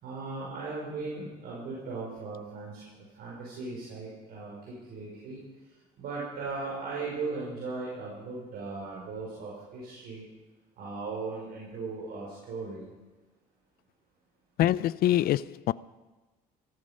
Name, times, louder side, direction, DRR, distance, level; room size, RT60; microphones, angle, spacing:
voice 1, 0.0-5.4 6.0-10.2 10.8-12.9, right 3 dB, 65° right, 5.5 m, -38 dB
voice 2, 14.6-15.7, left 13 dB, 65° left, 0.5 m, -25 dB
15.5 x 14.5 x 5.3 m
cardioid pair, 110°, 17 cm